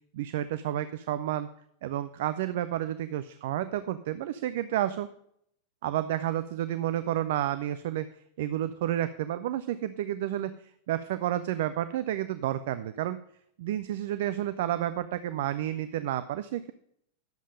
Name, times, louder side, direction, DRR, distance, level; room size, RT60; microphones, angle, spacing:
voice 1, 0.1-1.5 1.8-5.1 5.8-8.1 8.4-10.5 10.9-13.2 13.6-16.7, right 12 dB, 55° right, 12 dB, 0.5 m, -30 dB
10.5 x 7.3 x 5.2 m, 0.69 s
figure-of-eight pair, 90°, 0 cm